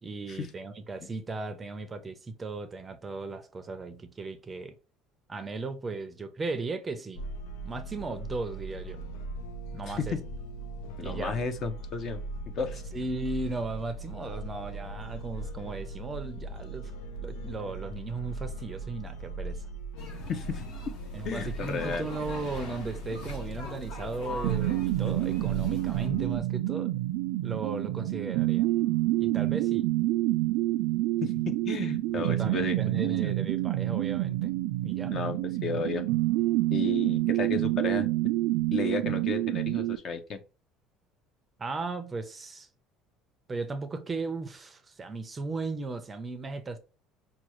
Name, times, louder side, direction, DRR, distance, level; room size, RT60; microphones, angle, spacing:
voice 1, 0.0-4.8 5.3-7.3 7.6-9.0 9.7-10.2 11.0-11.4 12.9-16.9 17.2-19.7 21.1-26.9 27.4-28.7 29.2-29.9 32.1-34.5 34.8-35.2 41.6-42.7 43.5-46.8, right 3 dB, 15° right, 0.5 m, -36 dB
sound 1, 7.2-26.4, right 2 dB, 90° left, 0.6 m, -39 dB
voice 2, 11.0-12.2 12.6-12.8 20.3-20.6 21.2-22.1 31.2-33.3 35.1-36.0 36.7-38.1 38.7-40.4, left 5 dB, 40° left, 0.7 m, -33 dB
sound 2, 20.0-26.1, left 4 dB, 55° left, 1.4 m, -43 dB
sound 3, 24.4-40.0, right 17 dB, 80° right, 0.3 m, -28 dB
5.9 x 2.3 x 3.0 m
cardioid pair, 150°, 0 cm